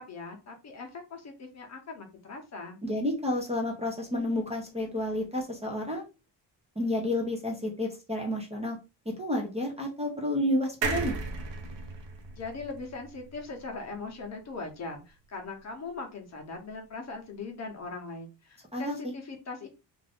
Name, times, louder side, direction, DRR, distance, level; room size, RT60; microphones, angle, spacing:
voice 1, 0.0-2.8 12.4-19.7, left 3 dB, 40° left, 2 dB, 0.8 m, -40 dB
voice 2, 2.8-6.0 6.8-8.8 9.1-11.2 18.7-19.1, left 1 dB, 15° right, 0 dB, 0.6 m, -30 dB
sound 1, 10.8-14.3 14.7-14.8 15.0-15.1, right 4 dB, 80° right, 0.8 m, -36 dB
2.5 x 2.5 x 3.4 m, 0.29 s
cardioid pair, 145°, 43 cm